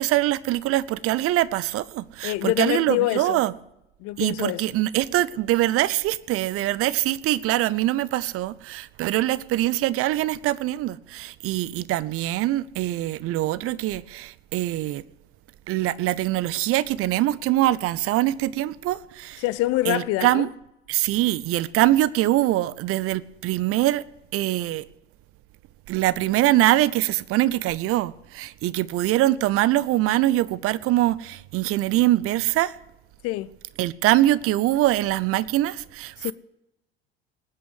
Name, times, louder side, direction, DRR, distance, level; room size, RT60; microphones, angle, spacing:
voice 1, 0.0-3.5 4.2-15.0 15.7-19.4 19.9-20.5 20.9-24.0 24.3-24.9 25.9-32.8 33.8-36.3, right 15 dB, 45° right, 0.8 m, -23 dB
voice 2, 2.2-3.4 4.0-4.6 19.4-20.5 33.2-33.5 36.2-36.3, left 17 dB, 50° left, 0.8 m, -25 dB
19.0 x 9.5 x 7.9 m
figure-of-eight pair, 60°, 30 cm